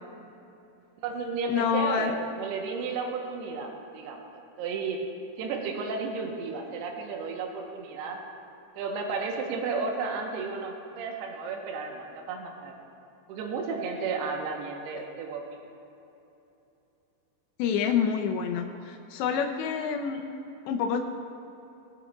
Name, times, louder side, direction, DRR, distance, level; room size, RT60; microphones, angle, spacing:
voice 1, 1.0-4.2 4.6-5.0 5.4-8.2 8.8-12.7 13.3-15.4, right 4 dB, 70° right, 1 dB, 2.8 m, -33 dB
voice 2, 1.5-2.1 17.6-20.2 20.7-21.0, left 7 dB, 80° left, 4 dB, 2.7 m, -27 dB
21.5 x 9.1 x 2.4 m, 2.9 s
omnidirectional pair, 5.4 m